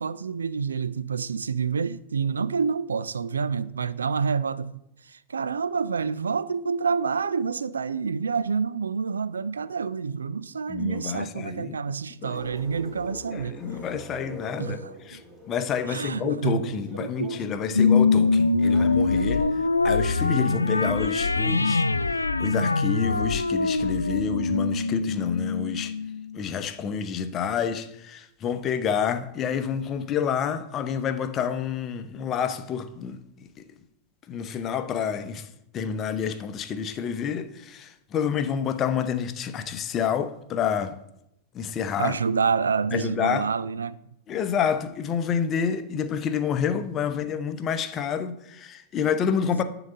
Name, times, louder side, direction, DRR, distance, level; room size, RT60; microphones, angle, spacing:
voice 1, 0.0-4.7 5.0-13.6 14.6-15.2 15.9-18.0 18.2-19.7 42.0-44.0, right 5 dB, 70° right, 0.4 m, -28 dB
voice 2, 10.7-11.8 12.2-12.4 13.3-14.8 15.1-15.2 15.5-19.5 19.8-21.9 22.1-26.0 26.3-33.5 34.3-35.5 35.7-41.0 41.5-42.2 42.9-43.5 44.3-49.6, left 7 dB, 30° left, 0.8 m, -28 dB
sound 1, 12.3-22.2, equal, 15° right, 2.5 m, -46 dB
sound 2, 17.7-26.5, left 4 dB, 80° left, 0.3 m, -23 dB
11.0 x 4.0 x 7.2 m
figure-of-eight pair, 90°, 0 cm